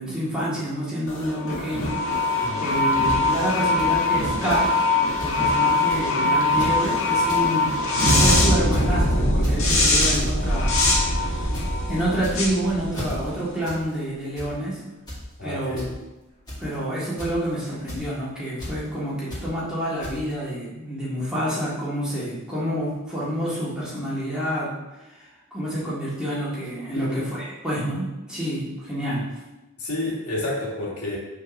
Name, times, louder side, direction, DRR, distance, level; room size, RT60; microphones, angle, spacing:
voice 1, 0.0-4.7 5.2-7.7 8.1-10.8 11.1-11.5 11.9-14.8 15.4-15.9 16.6-24.7 25.2-29.2, right 1 dB, 5° right, -9 dB, 2.0 m, -28 dB
sound 1, 1.1-13.5, left 2 dB, 70° left, 1.4 m, -22 dB
sound 2, 3.1-3.2 3.8-3.9 4.5-4.7 4.9-5.0 5.2-5.4 5.9-6.1 6.5-6.8 7.1-7.4 7.8-8.2 8.7-9.0 9.4-9.7 10.1-10.4 10.8-11.0 11.3-11.7 12.1-12.6 12.9-13.1 13.6-13.8 14.1-14.5 15.1-15.2 15.8-15.9 16.5-16.7 17.2-17.5 17.9-18.0 18.6-18.7 19.3-19.4 20.0-20.1, left 1 dB, 20° left, 2.1 m, -34 dB
voice 2, 15.4-15.9 26.9-27.2 29.8-31.2, left 1 dB, 90° left, -4 dB, 2.0 m, -30 dB
5.5 x 4.0 x 5.9 m, 1.0 s
head